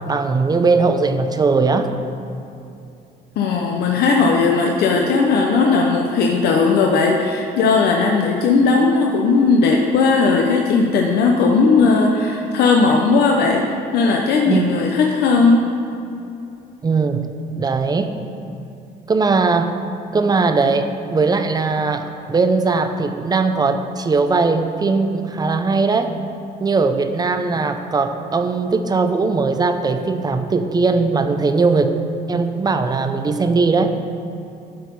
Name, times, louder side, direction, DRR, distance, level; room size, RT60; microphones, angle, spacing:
voice 1, 0.0-1.9 14.5-14.7 16.8-17.3 17.6-18.1 19.1-19.8 20.1-26.1 26.6-31.9 32.3-33.9, right 4 dB, 25° right, 7 dB, 0.6 m, -19 dB
voice 2, 3.4-15.6, left 4 dB, 70° left, 1 dB, 0.8 m, -17 dB
12.5 x 4.6 x 5.3 m, 2.6 s
cardioid pair, 110°, 17 cm